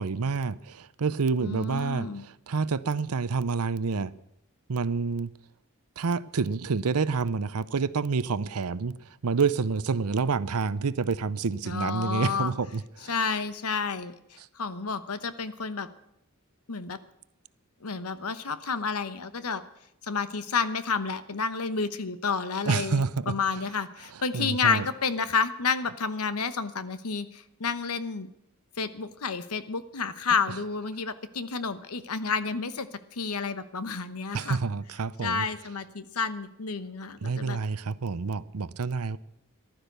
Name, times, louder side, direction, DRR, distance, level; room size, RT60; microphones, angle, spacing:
voice 1, 0.0-4.1 4.7-5.3 6.0-13.2 14.4-14.5 22.7-23.3 24.1-24.9 34.3-35.5 37.2-39.2, right 5 dB, 85° right, 0.6 m, -28 dB
voice 2, 1.4-2.3 11.6-12.5 13.1-15.9 16.7-17.0 17.8-19.6 20.1-28.3 28.8-32.9 33.1-34.6 35.2-37.6, left 5 dB, 85° left, 1.0 m, -30 dB
15.0 x 12.0 x 6.7 m
head